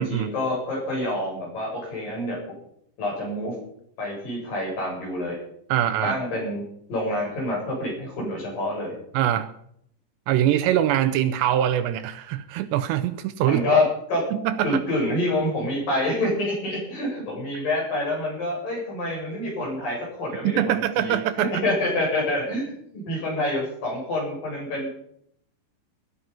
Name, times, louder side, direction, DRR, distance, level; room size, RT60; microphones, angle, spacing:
voice 1, 0.0-2.4 3.0-3.6 4.0-5.4 6.0-6.6 6.9-9.0 13.5-13.8 14.1-14.2 14.6-24.9, left 1 dB, 50° left, -2 dB, 9.2 m, -27 dB
voice 2, 5.7-6.2 9.1-9.5 10.3-13.6 14.3-14.8 20.4-21.6, right 11 dB, 80° right, 9 dB, 2.8 m, -23 dB
21.0 x 11.5 x 5.8 m, 0.70 s
omnidirectional pair, 5.3 m